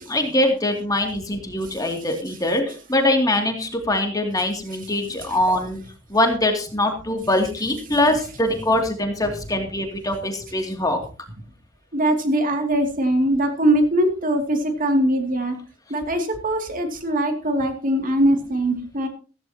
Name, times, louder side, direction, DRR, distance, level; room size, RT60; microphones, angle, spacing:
voice 1, 0.1-5.8 6.1-11.0, left 1 dB, 20° left, 4 dB, 2.6 m, -22 dB
voice 2, 11.9-15.6 15.9-19.1, right 1 dB, 45° right, 5 dB, 2.5 m, -21 dB
15.5 x 15.5 x 2.9 m, 0.35 s
head